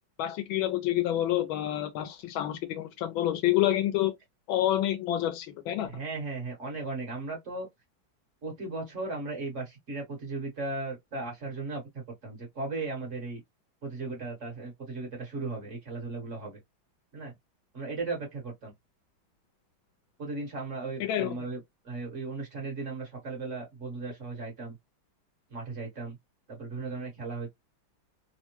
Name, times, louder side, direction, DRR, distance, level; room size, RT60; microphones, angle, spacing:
voice 1, 0.2-4.2 4.5-5.9 21.0-21.4, left 13 dB, 85° left, 1.4 m, -28 dB
voice 2, 5.9-7.7 8.4-11.8 12.2-13.4 13.8-16.6 17.1-17.3 17.7-18.7 20.2-21.6 21.8-24.8 25.5-26.2 26.5-27.5, right 3 dB, 40° right, 1.4 m, -36 dB
3.4 x 2.0 x 2.9 m
omnidirectional pair, 2.2 m